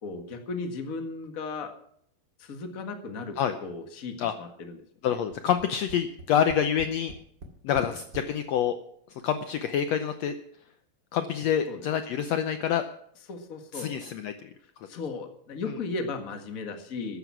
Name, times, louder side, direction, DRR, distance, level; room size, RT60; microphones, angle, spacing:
voice 1, 0.0-1.7 2.4-4.8 5.1-5.2 7.9-8.0 11.7-11.8 13.3-13.9 14.9-17.2, left 3 dB, 40° left, 6 dB, 1.3 m, -36 dB
voice 2, 5.0-7.1 7.6-8.8 9.1-10.3 11.1-12.8 13.7-14.5 15.7-15.8, left 9 dB, 80° left, 8 dB, 1.5 m, -27 dB
Tap, 5.3-8.3 9.2-9.3 9.6-9.7, right 1 dB, 35° right, 2.2 m, -45 dB
14.0 x 11.0 x 6.1 m, 0.67 s
omnidirectional pair, 4.0 m